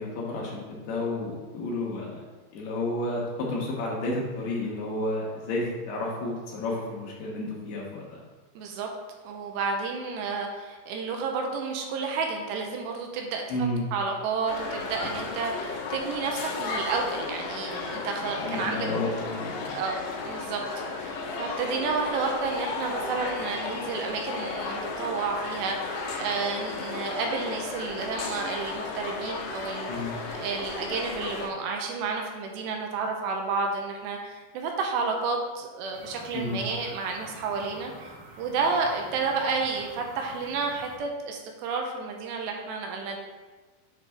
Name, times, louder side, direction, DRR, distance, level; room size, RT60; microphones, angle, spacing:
voice 1, 0.0-2.2 2.5-8.2 13.5-13.8 18.4-19.8 29.9-30.1 36.3-36.6, left 2 dB, 70° left, -3 dB, 3.1 m, -31 dB
voice 2, 8.6-8.9 9.2-13.4 13.9-18.9 19.6-20.6 20.9-43.2, right 4 dB, 85° right, 2 dB, 2.8 m, -31 dB
sound 1, 14.5-31.5, left 4 dB, 90° left, 3.1 m, -34 dB
sound 2, 35.9-41.0, right 2 dB, 60° right, 1.7 m, -47 dB
8.1 x 5.9 x 3.5 m, 1.3 s
omnidirectional pair, 5.1 m